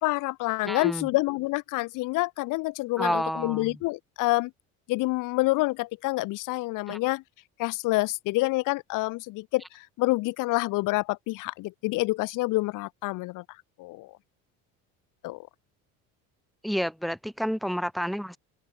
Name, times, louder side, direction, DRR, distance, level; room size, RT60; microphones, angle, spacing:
voice 1, 0.0-4.5 4.9-7.2 7.6-13.4 13.8-14.1 15.2-15.5, left 21 dB, 70° left, 3.0 m, -27 dB
voice 2, 0.6-1.1 3.0-3.8 6.9-7.0 16.6-18.4, equal, ahead, 5.7 m, -30 dB
open air
cardioid pair, 125°, 32 cm